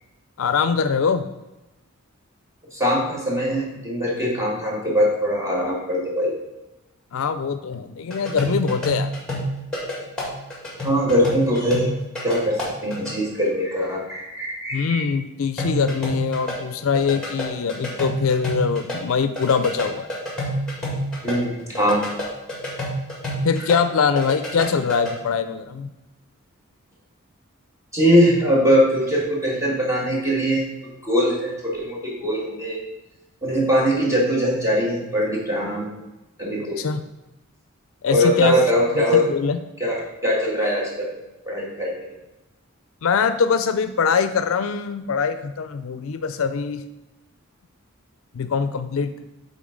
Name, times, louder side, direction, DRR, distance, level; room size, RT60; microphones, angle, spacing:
voice 1, 0.4-1.3 7.1-9.1 14.7-20.1 23.4-25.9 36.8-37.0 38.0-38.6 39.0-39.6 43.0-46.8 48.3-49.1, left 5 dB, 70° left, 10 dB, 0.4 m, -23 dB
voice 2, 2.7-6.3 10.8-11.9 12.2-15.0 21.2-22.1 27.9-32.8 33.4-35.9 36.4-36.8 38.1-39.2 39.8-41.1 41.5-42.0, equal, 15° right, -3 dB, 1.9 m, -21 dB
sound 1, 8.1-13.1 15.6-19.0 19.2-23.8 24.0-25.1, equal, 5° left, 2.1 m, -28 dB
7.2 x 4.0 x 5.0 m, 0.98 s
head